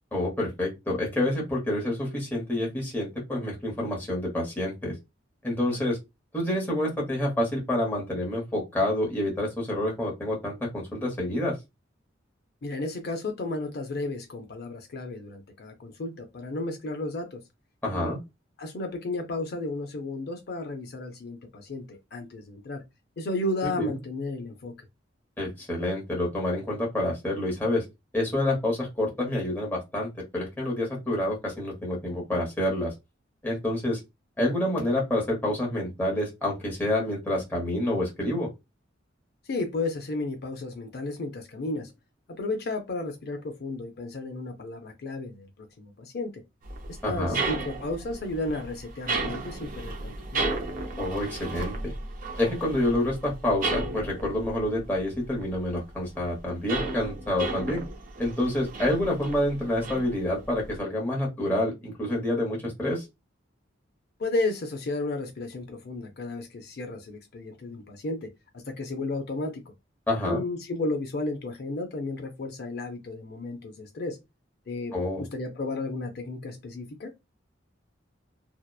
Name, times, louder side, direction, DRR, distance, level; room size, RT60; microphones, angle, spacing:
voice 1, 0.1-4.9 5.4-6.0 6.3-11.5 17.8-18.2 23.6-24.0 25.4-27.8 28.1-32.9 33.4-34.0 34.4-38.5 47.0-47.4 51.0-51.9 52.4-57.8 58.2-63.0 70.1-70.4 74.9-75.2, left 1 dB, 10° left, 0.9 m, -28 dB
voice 2, 12.6-17.4 17.9-18.1 18.6-22.8 23.2-24.7 39.5-41.9 42.4-46.3 47.0-50.5 64.2-68.3 68.7-69.6 70.3-74.2 74.7-77.1, left 2 dB, 55° left, 0.5 m, -33 dB
sound 1, 46.6-55.8 56.1-60.8, right 2 dB, 45° right, 0.5 m, -34 dB
2.8 x 2.0 x 2.2 m
head